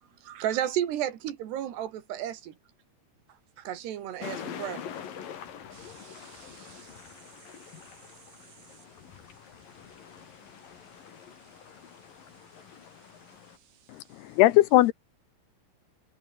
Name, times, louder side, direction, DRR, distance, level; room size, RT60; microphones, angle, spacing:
voice 1, 0.2-2.5 3.6-4.8, right 11 dB, 85° right, 4.2 m, -32 dB
sound 1, 4.2-13.6, left 8 dB, 60° left, 4.2 m, -45 dB
voice 2, 5.7-14.4, right 9 dB, 55° right, 3.0 m, -59 dB
voice 3, 13.9-14.9, left 16 dB, 80° left, 2.9 m, -20 dB
omnidirectional pair, 4.7 m